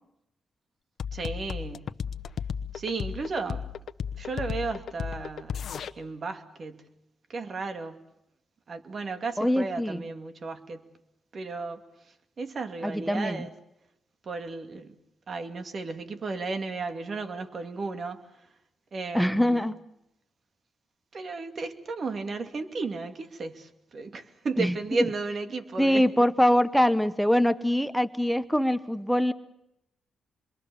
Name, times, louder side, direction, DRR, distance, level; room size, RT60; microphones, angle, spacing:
sound 1, 1.0-5.9, left 7 dB, 65° left, 1.0 m, -34 dB
voice 1, 1.1-1.9 2.7-3.7 4.2-5.6 6.0-6.9 7.3-8.0 8.7-10.8 11.3-11.8 12.4-13.5 14.2-14.9 15.3-18.2 18.9-19.6 21.1-26.0, right 3 dB, 50° right, 2.4 m, -34 dB
voice 2, 9.4-10.0 12.8-13.5 19.1-19.8 24.6-24.8 25.8-29.3, equal, ahead, 0.9 m, -23 dB
27.0 x 22.5 x 7.0 m
cardioid pair, 85°, 0 cm